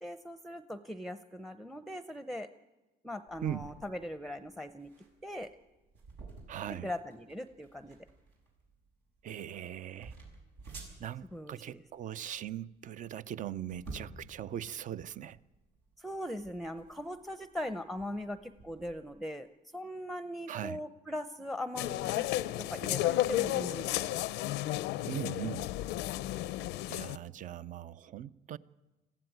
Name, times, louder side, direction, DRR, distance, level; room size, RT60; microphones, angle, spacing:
voice 1, 0.0-2.5 3.0-4.9 5.2-5.5 6.7-8.0 11.3-11.8 16.0-19.5 19.7-22.2 22.6-24.2, left 1 dB, ahead, 0.7 m, -40 dB
sound 1, 3.3-19.0, right 3 dB, 85° right, 6.3 m, -53 dB
voice 2, 6.5-6.9 9.2-10.1 11.0-15.4 20.5-20.8 25.1-25.7 26.9-28.6, right 11 dB, 50° right, 0.6 m, -40 dB
sound 2, 21.8-27.2, left 15 dB, 90° left, 0.6 m, -33 dB
21.0 x 15.0 x 9.2 m
cardioid pair, 110°, 17 cm